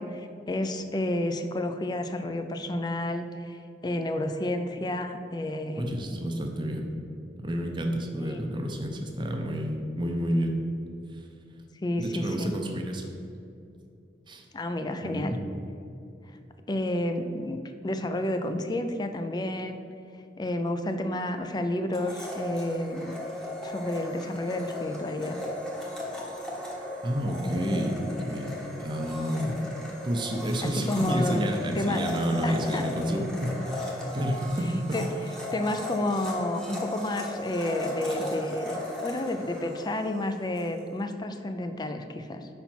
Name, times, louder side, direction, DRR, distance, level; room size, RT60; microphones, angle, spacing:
voice 1, 0.0-6.0 8.3-8.4 11.8-12.5 14.5-15.4 16.7-19.8 20.4-23.2 23.6-25.4 30.6-31.4 31.8-32.0 32.4-32.9 34.9-35.1 35.5-42.5, left 1 dB, 25° left, 8 dB, 0.4 m, -30 dB
voice 2, 5.8-6.9 7.4-10.5 11.1-11.2 12.0-13.1 14.3-14.4 15.0-15.4 27.0-29.6 30.0-35.0, equal, 25° right, 2 dB, 0.6 m, -30 dB
Domestic sounds home sounds, 21.9-40.7, left 1 dB, 5° left, 1.0 m, -37 dB
5.6 x 4.3 x 5.9 m, 2.6 s
head